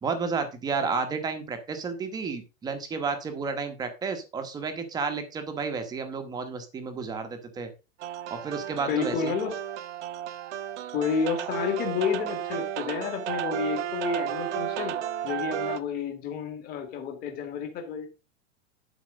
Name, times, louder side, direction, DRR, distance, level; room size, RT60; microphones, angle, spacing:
voice 1, 0.0-7.7 8.3-9.3, right 5 dB, 10° right, 7 dB, 1.0 m, -31 dB
sound 1, 8.0-15.8, right 11 dB, 60° right, 1.0 m, -33 dB
voice 2, 8.9-9.6 10.9-14.9 15.2-18.1, left 6 dB, 25° left, 3 dB, 2.0 m, -30 dB
11.0 x 4.7 x 5.1 m, 0.30 s
supercardioid pair, 165°, 39 cm